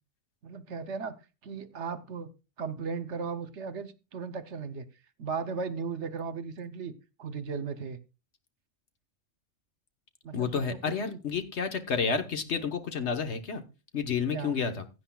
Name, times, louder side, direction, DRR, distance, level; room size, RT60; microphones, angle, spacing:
voice 1, 0.4-1.2 1.4-2.3 2.6-4.9 5.2-6.9 7.2-8.0 10.2-11.2 14.3-14.6, right 5 dB, 65° right, 12 dB, 1.1 m, -36 dB
voice 2, 10.3-13.6 13.9-14.8, left 5 dB, 60° left, 7 dB, 1.4 m, -30 dB
16.0 x 10.0 x 2.3 m, 0.30 s
omnidirectional pair, 1.3 m